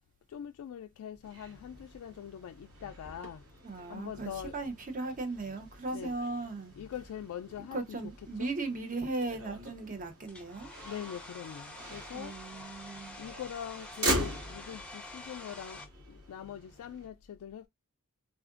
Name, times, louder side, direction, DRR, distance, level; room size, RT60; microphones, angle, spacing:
voice 1, 0.3-3.4 3.9-4.5 5.9-6.1 6.8-8.0 8.4-8.5 10.8-12.4 13.2-17.7, left 9 dB, 85° left, 0.3 m, -43 dB
Motor vehicle (road), 1.2-17.1, right 1 dB, 85° right, 1.8 m, -41 dB
voice 2, 3.6-6.7 7.7-10.7 12.1-13.2, right 3 dB, 35° right, 0.6 m, -37 dB
Domestic sounds home sounds, 10.3-15.9, left 2 dB, 5° left, 0.5 m, -47 dB
3.6 x 2.4 x 2.4 m
head